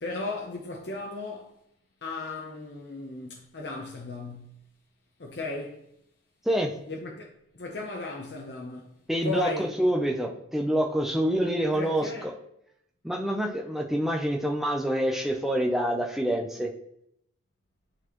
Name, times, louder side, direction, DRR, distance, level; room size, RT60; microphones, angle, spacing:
voice 1, 0.0-1.5 2.0-4.6 5.2-5.8 6.9-7.3 7.5-8.9 9.2-9.7 11.7-12.2, left 3 dB, 55° left, 0.8 m, -36 dB
voice 2, 9.1-12.3 13.0-16.7, equal, ahead, 0.6 m, -26 dB
11.0 x 4.1 x 3.0 m
head